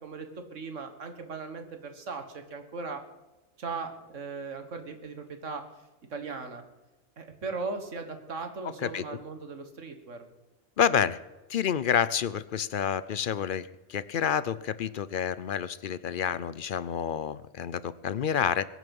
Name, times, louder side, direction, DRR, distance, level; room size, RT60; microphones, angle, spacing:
voice 1, 0.0-3.0 3.6-5.6 6.1-6.6 7.2-10.2, right 4 dB, 80° right, 7 dB, 1.9 m, -38 dB
voice 2, 10.8-11.2 11.5-18.7, left 8 dB, 55° left, 17 dB, 0.6 m, -28 dB
22.0 x 9.2 x 5.4 m, 1.1 s
omnidirectional pair, 1.3 m